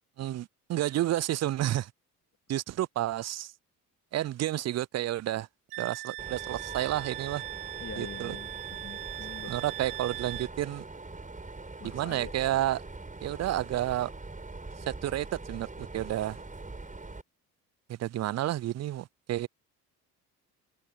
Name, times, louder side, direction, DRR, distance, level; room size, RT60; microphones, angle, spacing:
voice 1, 0.2-1.9 2.5-3.5 4.1-5.5 5.8-7.4 8.0-8.4 9.5-10.8 11.9-12.8 13.2-14.1 14.9-16.4 17.9-19.5, right 13 dB, 35° right, 0.6 m, -30 dB
Wind instrument woodwind instrument, 5.7-10.5, right 20 dB, 80° right, 0.9 m, -40 dB
Mechanisms, 6.2-17.2, right 3 dB, 15° right, 5.2 m, -43 dB
voice 2, 7.8-9.5 11.8-12.3, left 7 dB, 30° left, 2.6 m, -44 dB
hypercardioid pair, 55°, 47 cm